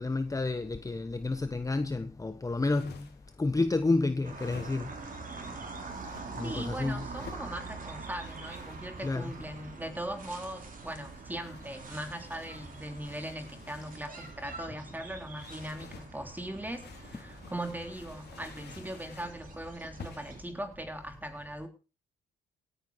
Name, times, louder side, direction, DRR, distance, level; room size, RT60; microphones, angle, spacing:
voice 1, 0.0-3.1 3.4-4.9 6.4-7.0 9.0-9.3, left 3 dB, 15° left, 1.1 m, -30 dB
sound 1, 2.5-3.4 4.2-5.1 5.8-6.3 7.0-7.5 8.2-9.7 10.7-14.4 15.3-16.1 16.7-19.4 20.0-20.4, left 6 dB, 55° left, 3.6 m, -52 dB
sound 2, 4.2-20.4, right 4 dB, 45° right, 4.7 m, -45 dB
voice 2, 6.4-21.7, right 1 dB, 10° right, 3.5 m, -40 dB
17.0 x 10.0 x 5.1 m
cardioid pair, 90°, 20 cm